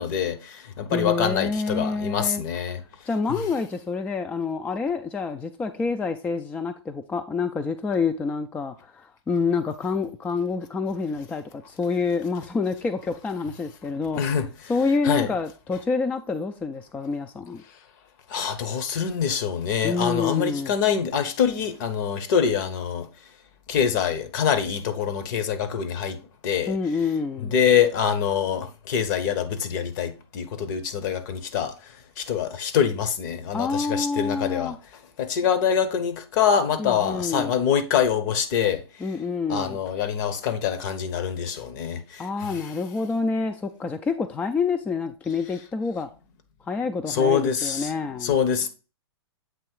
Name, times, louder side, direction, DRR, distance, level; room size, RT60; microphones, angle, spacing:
voice 1, 0.0-2.8 3.3-3.4 14.2-14.5 15.0-15.3 18.3-23.1 23.7-26.8 27.4-31.7 32.2-34.7 35.2-38.8 39.5-42.7 47.1-47.9 48.2-48.7, left 8 dB, 45° left, 1.0 m, -25 dB
voice 2, 0.9-2.4 3.1-14.2 14.7-17.6 19.8-20.7 26.6-27.5 33.5-34.8 36.8-37.5 39.0-39.8 42.2-46.1 46.7-48.3, left 4 dB, 10° left, 0.3 m, -27 dB
7.7 x 3.1 x 4.6 m
figure-of-eight pair, 115°, 14 cm